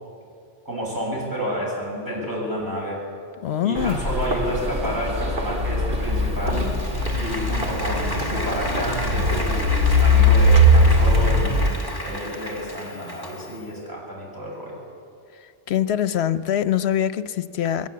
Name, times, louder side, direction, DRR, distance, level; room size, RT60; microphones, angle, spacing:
voice 1, 0.6-3.0 3.6-6.7 7.2-11.7 12.0-14.7, equal, 20° right, -5 dB, 7.9 m, -30 dB
voice 2, 3.4-4.0 15.7-17.9, left 10 dB, 80° left, 13 dB, 1.0 m, -23 dB
sound 1, 3.7-11.7, left 1 dB, 60° right, 2.2 m, -20 dB
Applause, 6.1-13.7, left 1 dB, 20° left, 1.9 m, -33 dB
22.0 x 17.0 x 8.6 m, 2.3 s
omnidirectional pair, 1.1 m